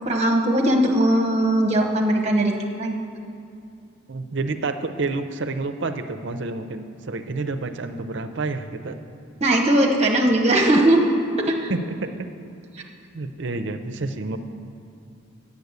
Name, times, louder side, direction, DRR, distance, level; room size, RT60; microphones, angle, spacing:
voice 1, 0.0-2.5 2.8-3.0 9.4-11.0 11.4-11.7, right 1 dB, 30° right, 1 dB, 1.0 m, -19 dB
voice 2, 4.1-9.0 11.7-12.3 13.1-14.4, right 3 dB, 55° right, 8 dB, 0.6 m, -29 dB
8.4 x 7.0 x 8.1 m, 2.5 s
head